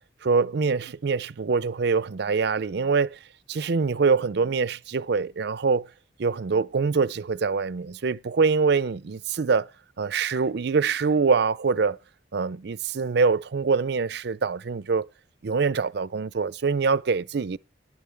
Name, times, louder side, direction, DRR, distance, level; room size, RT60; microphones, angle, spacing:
voice 1, 0.2-3.2 3.5-5.9 6.2-9.7 10.0-12.0 12.3-15.1 15.4-17.6, right 5 dB, 60° right, 0.5 m, -24 dB
12.5 x 11.0 x 3.4 m
head